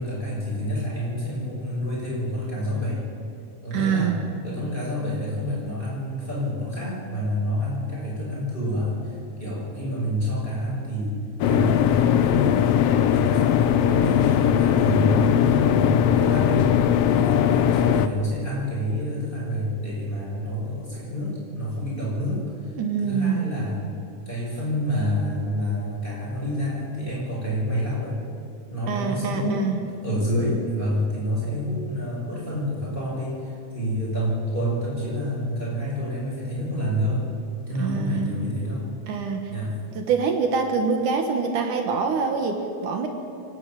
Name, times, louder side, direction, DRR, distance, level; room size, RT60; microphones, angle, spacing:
voice 1, 0.0-3.0 3.6-4.2 4.4-11.2 11.4-12.7 13.1-16.8 17.1-22.4 23.0-23.9 24.2-28.2 28.7-37.3 37.7-38.9 39.5-39.8, equal, 15° left, -5 dB, 6.8 m, -28 dB
voice 2, 3.7-4.2 22.8-23.5 28.9-29.8 37.8-38.4 39.1-39.5 40.0-43.1, right 5 dB, 75° right, 4 dB, 2.9 m, -25 dB
sound 1, 11.4-18.1, left 9 dB, 75° left, 1.4 m, -19 dB
27.5 x 12.0 x 9.0 m, 2.6 s
omnidirectional pair, 3.6 m